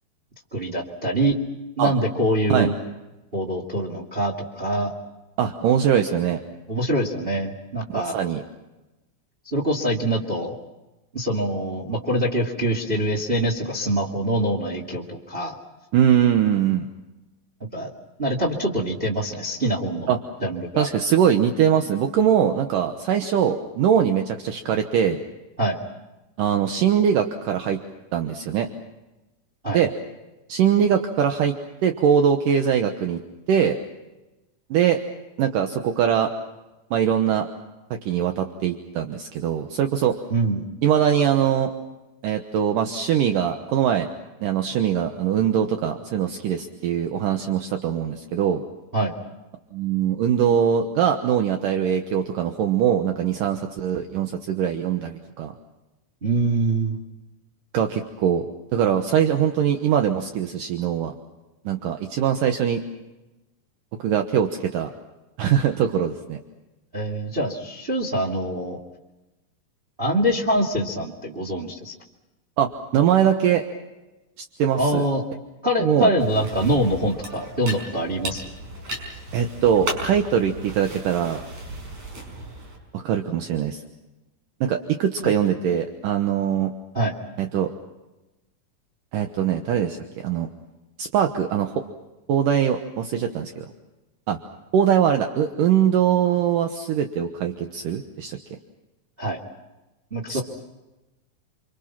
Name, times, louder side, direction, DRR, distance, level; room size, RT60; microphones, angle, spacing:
voice 1, 0.5-1.4 1.8-2.7 3.3-4.9 6.7-8.1 9.5-10.6 11.1-15.5 17.7-17.9 18.2-20.1 20.4-20.9 25.6-25.8 29.6-29.8 40.3-40.7 48.9-49.1 56.2-57.0 66.9-68.8 70.0-71.9 74.8-75.2 75.6-78.4 85.2-85.3 86.9-87.1 99.2-99.4 100.1-100.4, right 1 dB, 20° right, 0 dB, 2.1 m, -24 dB
voice 2, 5.4-6.4 7.9-8.4 15.9-16.9 20.1-20.2 20.8-25.2 26.4-27.8 28.1-28.7 29.7-29.9 30.5-31.5 31.8-33.2 33.5-33.8 34.7-35.0 35.4-36.3 36.9-37.5 38.1-40.2 40.8-41.7 42.2-44.1 44.4-48.6 49.7-55.5 57.7-58.5 58.7-61.1 61.7-62.8 64.0-64.9 65.4-66.4 72.6-73.6 74.6-75.0 75.8-76.1 79.3-81.4 82.9-83.8 84.6-86.7 87.4-87.7 89.1-90.5 91.0-91.7 92.3-93.7 94.3-94.4 94.7-98.4 100.3-100.4, right 9 dB, 70° right, 5 dB, 2.7 m, -22 dB
sound 1, 76.2-82.8, right 1 dB, 50° right, 6.6 m, -35 dB
29.0 x 25.5 x 5.9 m, 1.0 s
omnidirectional pair, 4.1 m